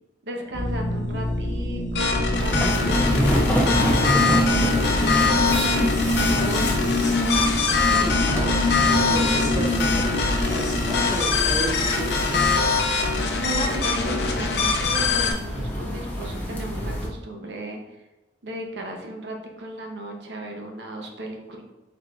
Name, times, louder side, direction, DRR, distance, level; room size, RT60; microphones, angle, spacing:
voice 1, 0.2-5.7 6.3-7.1 13.3-17.8 18.4-21.6, right 1 dB, 75° right, 2 dB, 0.7 m, -35 dB
sound 1, 0.5-12.6, left 1 dB, 45° left, 1.0 m, -26 dB
sound 2, 2.0-15.3, left 4 dB, 65° left, 0.5 m, -24 dB
sound 3, 2.3-17.1, equal, 10° left, 0.7 m, -28 dB
voice 2, 7.9-12.4, right 1 dB, 30° right, 0 dB, 0.5 m, -33 dB
4.6 x 3.8 x 2.3 m, 1.0 s
head